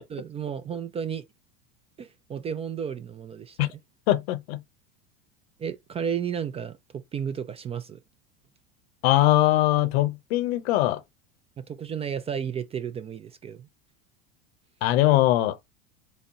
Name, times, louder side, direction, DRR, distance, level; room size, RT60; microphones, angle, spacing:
voice 1, 0.1-1.2 2.0-3.7 5.6-8.0 11.6-13.7, right 7 dB, 20° right, 0.3 m, -33 dB
voice 2, 4.1-4.6 9.0-11.0 14.8-15.6, left 15 dB, 70° left, 0.7 m, -21 dB
4.0 x 2.0 x 3.6 m
supercardioid pair, 110°, 32 cm